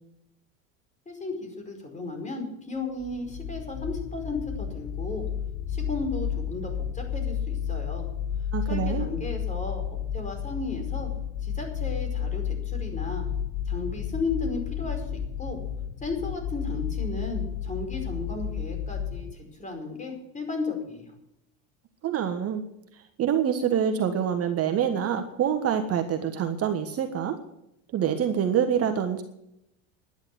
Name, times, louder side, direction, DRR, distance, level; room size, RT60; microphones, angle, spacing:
voice 1, 1.0-5.2 5.7-8.1 8.7-9.8 10.1-11.1 11.4-13.3 13.6-15.6 16.0-21.1, left 3 dB, 20° left, 4 dB, 5.0 m, -34 dB
sound 1, 3.0-19.3, left 8 dB, 45° left, 0.9 m, -32 dB
voice 2, 8.5-9.0 22.0-22.6 22.9-27.4 27.9-29.2, right 8 dB, 40° right, 6 dB, 1.4 m, -26 dB
11.0 x 10.5 x 7.8 m, 0.81 s
supercardioid pair, 110°, 38 cm